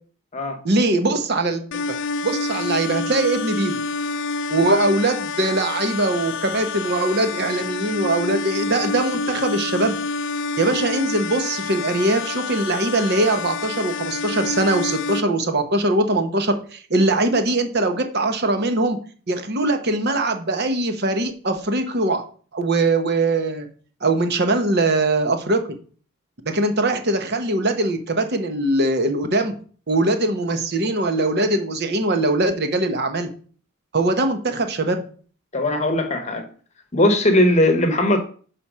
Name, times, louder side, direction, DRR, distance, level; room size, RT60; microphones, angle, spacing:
voice 1, 0.6-1.8 2.2-3.8 4.5-10.0 10.6-19.0 19.3-22.2 22.5-23.7 24.0-25.6 26.4-29.5 29.9-33.3 33.9-35.0, right 2 dB, 45° right, 0.9 m, -21 dB
sound 1, 1.7-15.2, left 4 dB, 55° left, 0.3 m, -28 dB
voice 2, 35.5-36.4 36.9-38.2, left 1 dB, 30° left, 0.9 m, -18 dB
5.0 x 4.3 x 6.0 m
head